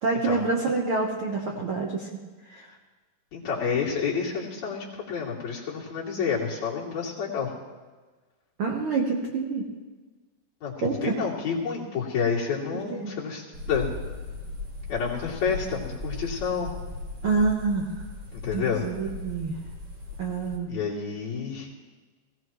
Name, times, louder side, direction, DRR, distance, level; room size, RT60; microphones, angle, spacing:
voice 1, 0.0-2.1 2.5-2.7 8.6-9.7 10.8-11.1 12.9-13.2 17.2-17.9 18.5-19.5 20.2-20.7, right 4 dB, 75° right, 0 dB, 1.2 m, -27 dB
voice 2, 3.3-7.5 10.6-13.9 14.9-16.7 18.3-18.8 20.7-21.7, left 6 dB, 50° left, -6 dB, 3.7 m, -29 dB
sound 1, 13.5-20.6, left 2 dB, 40° right, 2.8 m, -37 dB
19.0 x 17.0 x 3.1 m, 1.3 s
omnidirectional pair, 4.3 m